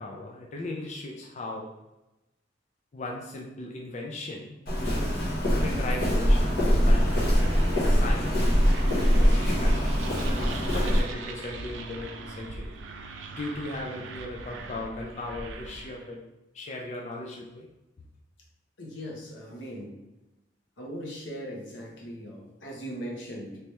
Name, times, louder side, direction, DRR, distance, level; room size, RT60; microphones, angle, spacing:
voice 1, 0.0-1.7 2.9-4.5 5.6-8.7 9.1-12.7 13.3-16.2 16.5-17.7, left 2 dB, 40° left, -1 dB, 0.4 m, -37 dB
Walk footsteps, 4.7-11.0, equal, 55° left, 1.4 m, -23 dB
sound 1, 6.7-16.1, right 3 dB, 85° right, 0.4 m, -40 dB
voice 2, 18.8-20.0 20.8-23.6, equal, 80° left, -1 dB, 0.9 m, -39 dB
3.2 x 2.9 x 3.2 m, 1.0 s
head